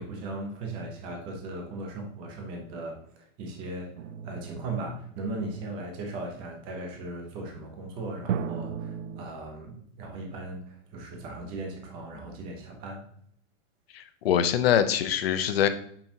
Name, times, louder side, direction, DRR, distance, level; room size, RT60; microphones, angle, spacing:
voice 1, 0.0-3.9 4.2-13.0, right 2 dB, 15° right, 1 dB, 0.6 m, -37 dB
sound 1, 4.0-5.7 8.3-9.2, right 8 dB, 80° right, 0.6 m, -35 dB
voice 2, 13.9-15.7, left 9 dB, 50° left, 10 dB, 0.7 m, -24 dB
6.7 x 5.6 x 2.8 m, 0.64 s
supercardioid pair, 175°, 38 cm